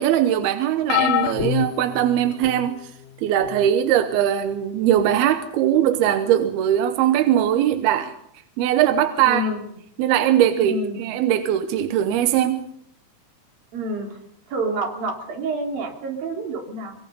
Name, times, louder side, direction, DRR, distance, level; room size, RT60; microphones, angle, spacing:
voice 1, 0.0-2.9 3.2-8.1 8.6-9.5 10.0-12.7, right 11 dB, 70° right, 2.6 m, -20 dB
sound 1, 0.9-2.7 3.4-3.7 5.0-5.1, left 10 dB, 85° left, 3.4 m, -25 dB
voice 2, 9.2-9.6 10.6-11.0 13.7-14.2 14.5-17.0, right 1 dB, 55° right, 5.1 m, -28 dB
24.0 x 23.5 x 5.4 m
omnidirectional pair, 5.3 m